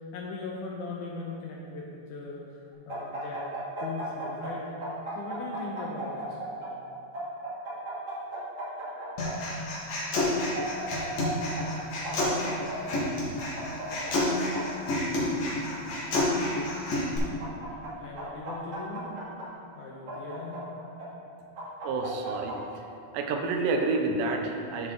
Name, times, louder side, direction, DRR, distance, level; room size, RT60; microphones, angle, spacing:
voice 1, 0.0-3.4 3.8-4.7 5.2-6.4 18.0-19.1 19.8-20.7, left 3 dB, 75° left, -3 dB, 2.0 m, -39 dB
sound 1, 2.9-4.5 4.8-6.7 7.1-9.3 10.1-11.3 11.5-11.6 12.0-13.0 13.5-14.6 15.2-16.2 17.0-17.9 18.2-19.4 20.1-21.0 21.6-22.5, right 2 dB, 35° right, 2.1 m, -37 dB
Human voice, 9.2-17.2, left 1 dB, 55° left, 2.6 m, -29 dB
voice 2, 21.8-22.8 23.1-24.9, right 3 dB, 80° right, 3 dB, 2.2 m, -29 dB
13.0 x 4.9 x 3.8 m, 2.5 s
omnidirectional pair, 4.3 m